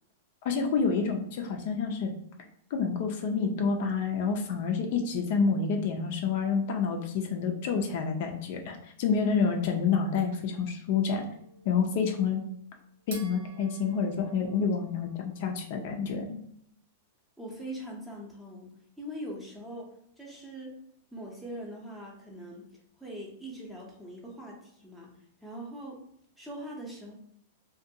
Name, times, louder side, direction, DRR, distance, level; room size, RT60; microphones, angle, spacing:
voice 1, 0.4-2.1 2.7-11.3 11.6-12.4 13.1-16.4, left 5 dB, 50° left, 3 dB, 0.4 m, -28 dB
sound 1, 10.9-15.7, right 3 dB, 60° right, 0.7 m, -52 dB
voice 2, 17.4-18.7 19.0-19.9 20.2-20.8 21.1-22.6 23.0-25.1 25.4-26.0 26.4-27.1, right 1 dB, ahead, -3 dB, 0.6 m, -41 dB
2.5 x 2.2 x 2.7 m, 0.69 s
supercardioid pair, 155°, 0 cm